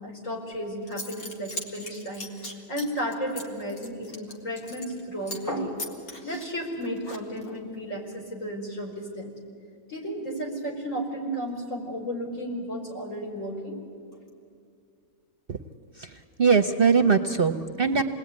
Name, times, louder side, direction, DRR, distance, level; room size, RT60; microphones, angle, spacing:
voice 1, 0.0-5.8 6.2-9.3 9.9-13.8, equal, 55° left, -1 dB, 5.0 m, -33 dB
Zipper (clothing) / Coin (dropping), 0.5-0.6 0.9-5.0 5.3-5.5 5.8-7.6, left 1 dB, 85° left, 2.6 m, -39 dB
voice 2, 15.9-18.0, right 5 dB, 45° right, 7 dB, 0.9 m, -22 dB
27.5 x 20.0 x 9.6 m, 2.3 s
omnidirectional pair, 1.5 m